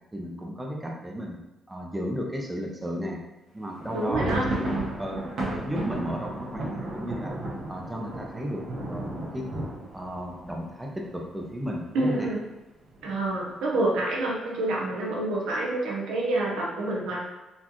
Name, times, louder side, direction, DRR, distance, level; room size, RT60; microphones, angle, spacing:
voice 1, 0.1-1.4 1.7-3.2 3.5-5.2 5.6-7.4 7.7-8.6 8.9-9.5 9.9-12.3, equal, 10° right, 0 dB, 0.6 m, -34 dB
sound 1, 3.8-11.5 11.8-11.9 12.2-12.4 12.9-13.4, right 1 dB, 70° right, 1.2 m, -33 dB
voice 2, 3.9-4.4 11.9-12.4 13.0-17.2, right 2 dB, 85° right, -3 dB, 0.8 m, -27 dB
4.1 x 2.3 x 3.0 m, 1.1 s
cardioid pair, 90°, 0 cm